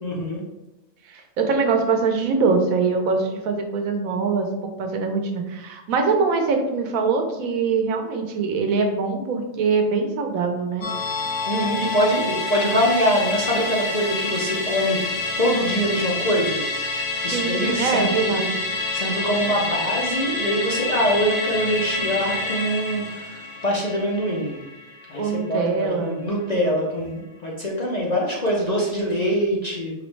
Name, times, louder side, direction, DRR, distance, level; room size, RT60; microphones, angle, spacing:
voice 1, 0.0-0.4 11.5-16.6 17.2-18.4 18.9-24.6 25.1-29.9, equal, 45° left, -3 dB, 0.5 m, -24 dB
voice 2, 1.1-4.5 4.8-10.9 17.3-18.6 25.1-26.3 26.7-26.8, right 4 dB, 90° right, 4 dB, 1.1 m, -23 dB
Musical instrument, 10.8-25.5 25.8-25.9, left 3 dB, 80° left, 1.2 m, -28 dB
4.9 x 3.0 x 3.2 m, 1.0 s
omnidirectional pair, 1.4 m